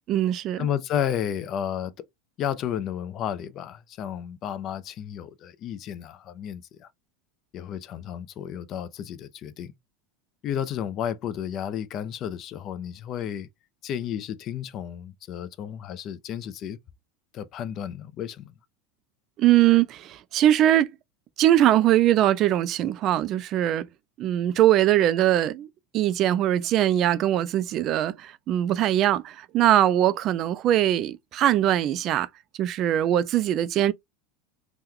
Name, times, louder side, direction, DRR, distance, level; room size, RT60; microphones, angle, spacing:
voice 1, 0.1-0.7 19.4-20.9 21.4-23.9 24.2-25.7 25.9-32.3 32.6-33.9, right 12 dB, 40° right, 0.3 m, -21 dB
voice 2, 0.6-1.9 2.4-6.9 7.5-9.7 10.4-13.5 13.8-16.8 17.3-18.5, left 9 dB, 40° left, 0.4 m, -32 dB
2.9 x 2.2 x 3.6 m
supercardioid pair, 145°, 0 cm